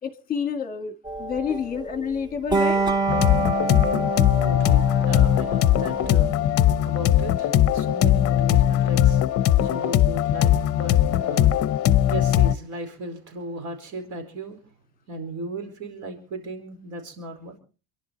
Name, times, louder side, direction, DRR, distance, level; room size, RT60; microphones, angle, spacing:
voice 1, 0.0-2.8, left 6 dB, 25° left, 8 dB, 1.9 m, -29 dB
sound 1, 1.1-6.5, right 3 dB, 10° right, 0.9 m, -27 dB
sound 2, 3.1-12.5, left 12 dB, 45° left, 0.7 m, -20 dB
voice 2, 4.4-6.3 6.8-11.6 12.0-14.6 15.1-17.6, right 2 dB, 60° right, 4 dB, 4.7 m, -36 dB
28.0 x 11.0 x 4.1 m, 0.38 s
cardioid pair, 170°, 34 cm